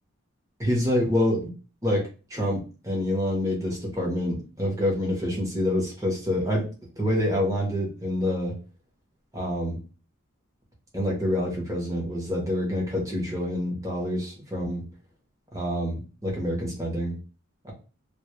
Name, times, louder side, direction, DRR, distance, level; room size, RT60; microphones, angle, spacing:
voice 1, 0.6-1.5 1.8-6.7 7.0-8.6 9.3-9.8 10.9-14.8 15.5-17.2 17.6-17.7, left 1 dB, 15° right, -2 dB, 0.7 m, -27 dB
2.2 x 2.0 x 2.8 m, 0.35 s
head